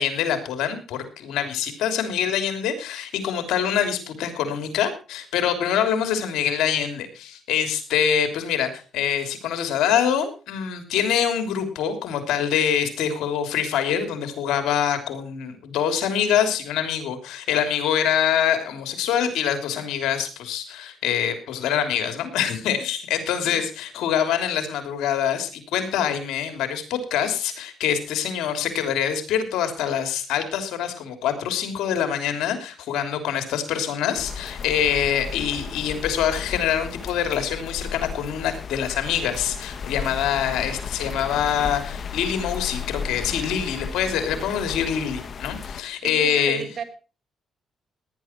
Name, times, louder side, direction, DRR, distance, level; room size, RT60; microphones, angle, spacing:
voice 1, 0.0-46.6, left 8 dB, 85° left, 7 dB, 3.2 m, -25 dB
sound 1, 34.1-45.8, left 6 dB, 50° left, 1.1 m, -34 dB
voice 2, 46.0-46.8, right 6 dB, 50° right, 7 dB, 3.2 m, -34 dB
18.0 x 10.5 x 4.5 m, 0.36 s
cardioid pair, 90°, 0 cm